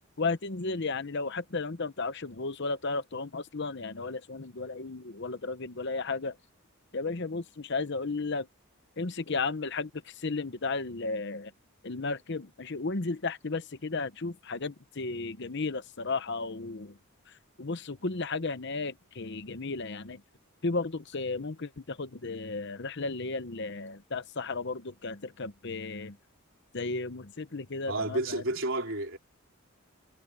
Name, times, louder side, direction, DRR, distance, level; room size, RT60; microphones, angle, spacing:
voice 1, 0.2-6.4 6.9-8.5 9.0-11.5 11.8-17.0 17.3-20.2 20.6-26.2 26.7-28.4, left 3 dB, 50° left, 0.9 m, -34 dB
voice 2, 27.9-29.2, right 2 dB, 60° right, 4.3 m, -31 dB
head